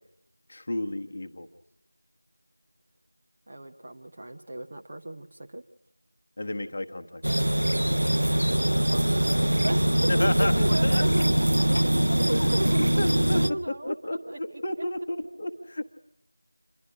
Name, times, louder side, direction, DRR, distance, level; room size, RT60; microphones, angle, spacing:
voice 1, 0.5-1.5 6.4-7.6 10.1-11.0 13.0-15.8, left 1 dB, 25° left, 6 dB, 1.1 m, -32 dB
voice 2, 3.5-5.6 7.7-11.9 12.2-14.8, right 1 dB, 25° right, 4 dB, 0.8 m, -36 dB
sound 1, 7.2-13.5, right 1 dB, 55° right, 0.9 m, -23 dB
27.5 x 12.0 x 9.9 m, 0.80 s
figure-of-eight pair, 175°, 0 cm